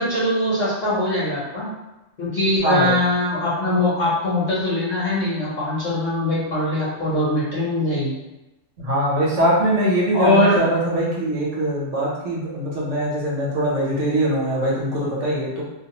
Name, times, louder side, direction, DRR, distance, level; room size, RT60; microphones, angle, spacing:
voice 1, 0.0-1.7 2.2-8.1 10.1-10.6, left 1 dB, 40° left, -9 dB, 1.0 m, -21 dB
voice 2, 2.6-2.9 8.8-15.6, right 1 dB, 75° right, -5 dB, 1.2 m, -22 dB
2.6 x 2.0 x 2.9 m, 0.99 s
omnidirectional pair, 1.3 m